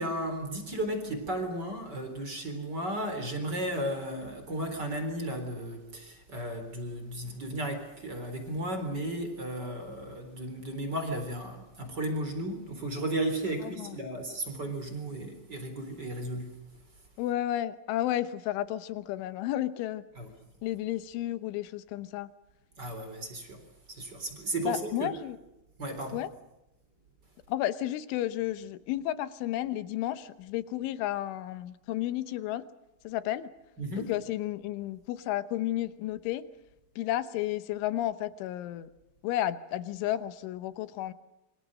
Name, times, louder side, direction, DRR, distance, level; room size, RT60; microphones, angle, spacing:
voice 1, 0.0-16.5 20.2-20.3 22.8-23.6 23.9-25.1 25.8-26.2 33.8-34.1, right 1 dB, 25° right, 7 dB, 3.7 m, -34 dB
voice 2, 17.2-20.0 20.6-22.3 24.7-25.4 26.1-26.3 27.5-32.6 33.0-33.5 34.1-36.4 37.0-38.9 39.2-41.1, left 13 dB, 80° left, 13 dB, 3.4 m, -32 dB
28.0 x 24.5 x 6.5 m, 0.95 s
omnidirectional pair, 5.7 m